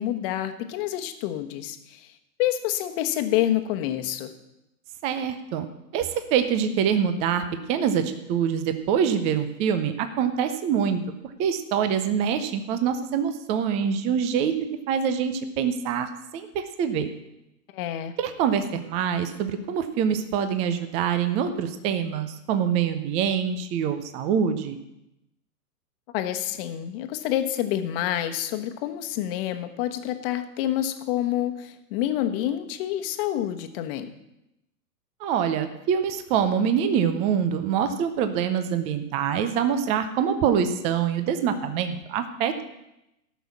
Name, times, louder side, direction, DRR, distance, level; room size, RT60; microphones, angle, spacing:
voice 1, 0.0-4.3 17.7-18.2 26.1-34.1, left 12 dB, 35° left, 7 dB, 1.2 m, -28 dB
voice 2, 5.0-5.7 5.9-11.0 11.4-14.5 14.9-17.1 18.2-24.8 35.2-42.6, right 8 dB, 15° right, 9 dB, 0.5 m, -25 dB
13.5 x 6.2 x 7.2 m, 0.88 s
hypercardioid pair, 125°, 47 cm